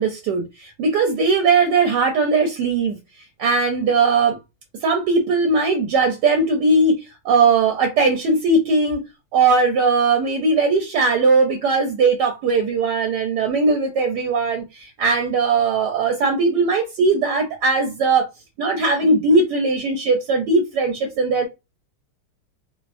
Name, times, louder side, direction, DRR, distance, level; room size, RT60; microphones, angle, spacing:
voice 1, 0.0-3.0 3.4-4.4 4.8-9.0 9.3-18.3 18.6-21.5, right 3 dB, 75° right, 1.0 m, -19 dB
3.4 x 2.0 x 2.4 m
omnidirectional pair, 2.3 m